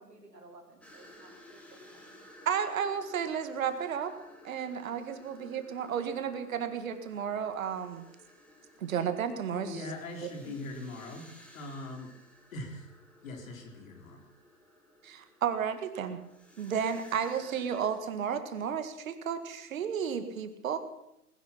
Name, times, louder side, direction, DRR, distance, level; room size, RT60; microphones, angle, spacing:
voice 1, 0.0-2.2, right 2 dB, 90° right, 2 dB, 4.0 m, -55 dB
sound 1, 0.8-18.0, left 1 dB, 5° left, 2.4 m, -56 dB
voice 2, 2.5-4.1 4.4-8.0 8.8-9.8 15.0-16.2 16.6-20.8, right 7 dB, 60° right, 10 dB, 2.0 m, -32 dB
voice 3, 9.5-12.1 12.5-12.9 13.2-14.2, left 2 dB, 55° left, 3 dB, 4.2 m, -41 dB
19.5 x 11.0 x 5.9 m, 0.82 s
figure-of-eight pair, 120°, 47 cm